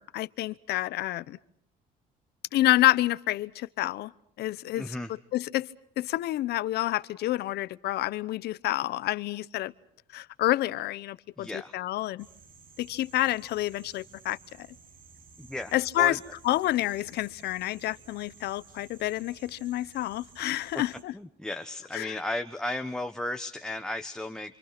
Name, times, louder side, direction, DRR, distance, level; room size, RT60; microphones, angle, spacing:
voice 1, 0.0-1.4 2.5-4.1 4.4-4.9 5.3-5.7 6.0-9.7 10.1-12.3 12.8-14.7 15.7-16.2 16.4-21.1 21.9-22.1, left 15 dB, 75° left, 17 dB, 1.0 m, -28 dB
voice 2, 4.8-5.1 11.4-11.7 15.4-16.2 20.7-20.8 21.1-24.6, left 1 dB, 5° left, 6 dB, 1.4 m, -35 dB
sound 1, 12.2-21.0, right 5 dB, 55° right, 6.6 m, -54 dB
27.5 x 27.5 x 6.0 m, 0.71 s
cardioid pair, 110°, 17 cm